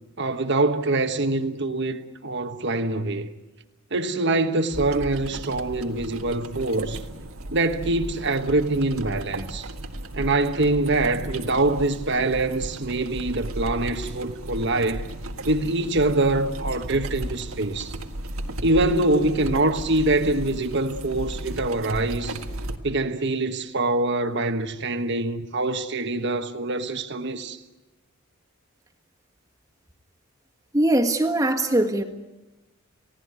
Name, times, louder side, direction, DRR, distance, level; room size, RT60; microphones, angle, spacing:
voice 1, 0.2-3.3 3.9-7.0 7.5-9.7 10.1-15.1 15.5-17.9 18.6-22.4 22.8-27.6, right 2 dB, 50° right, 1.3 m, -24 dB
sound 1, 4.7-22.8, right 1 dB, 70° right, 1.6 m, -35 dB
voice 2, 30.7-32.0, right 1 dB, 15° right, 1.7 m, -21 dB
29.5 x 17.5 x 9.6 m
head